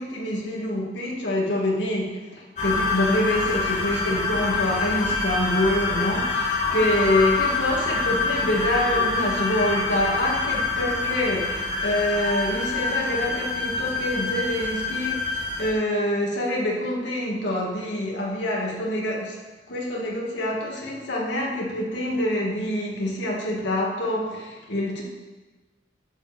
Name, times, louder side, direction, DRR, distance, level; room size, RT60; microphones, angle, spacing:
voice 1, 0.0-19.4 19.7-25.0, left 1 dB, 70° left, -3 dB, 2.4 m, -26 dB
sound 1, 2.6-15.7, left 3 dB, 40° left, 2.2 m, -26 dB
10.5 x 7.3 x 4.6 m, 1.2 s
head